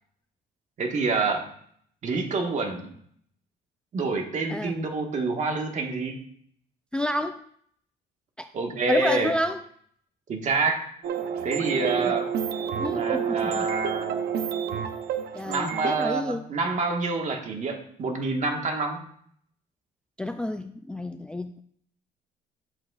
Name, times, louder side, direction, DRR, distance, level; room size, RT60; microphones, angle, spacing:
voice 1, 0.8-1.5 2.0-2.9 3.9-6.2 8.5-9.3 10.3-10.9 11.4-12.3 12.9-14.3 15.4-19.0, right 3 dB, 45° right, 3 dB, 1.5 m, -27 dB
voice 2, 6.9-7.4 8.4-8.5 8.9-9.6 11.9-12.1 12.7-13.7 15.3-16.4 20.2-21.6, left 1 dB, 5° left, 8 dB, 0.3 m, -30 dB
sound 1, 11.0-16.0, right 8 dB, 70° right, 0.8 m, -29 dB
10.5 x 7.8 x 2.4 m, 0.65 s
cardioid pair, 110°, 17 cm